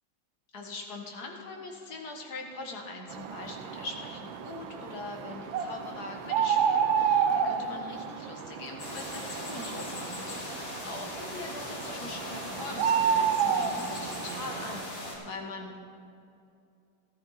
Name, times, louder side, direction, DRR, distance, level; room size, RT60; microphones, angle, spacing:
voice 1, 0.5-15.8, left 3 dB, 55° left, 1 dB, 1.9 m, -42 dB
sound 1, 3.1-14.8, right 7 dB, 85° right, 1.5 m, -30 dB
sound 2, 8.8-15.2, left 1 dB, 85° left, 3.0 m, -39 dB
13.5 x 13.5 x 4.1 m, 2.6 s
omnidirectional pair, 2.1 m